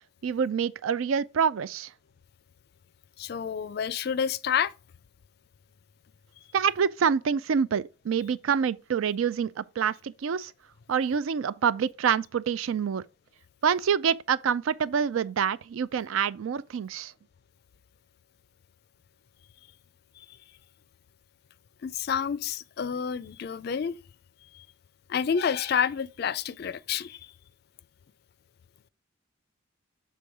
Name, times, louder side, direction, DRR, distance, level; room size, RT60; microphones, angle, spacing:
voice 1, 0.2-1.9 6.5-10.5 10.9-13.0 13.6-17.1, right 7 dB, 85° right, 0.4 m, -26 dB
voice 2, 3.2-4.7 20.2-20.4 21.8-24.0 24.5-24.6 25.1-27.3, left 7 dB, 50° left, 0.3 m, -29 dB
6.9 x 3.7 x 4.7 m
head